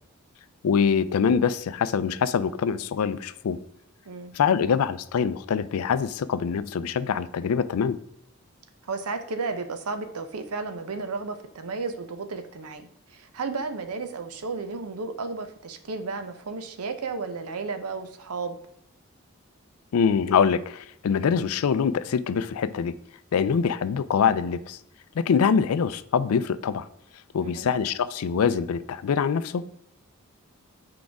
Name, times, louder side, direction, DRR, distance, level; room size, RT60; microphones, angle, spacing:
voice 1, 0.6-3.6 4.3-8.0 19.9-22.9 23.3-24.8 25.2-26.9 27.3-29.8, left 6 dB, 80° left, 0.4 m, -24 dB
voice 2, 8.9-18.6 27.4-27.7, right 4 dB, 85° right, 0.7 m, -33 dB
6.2 x 4.8 x 3.5 m
head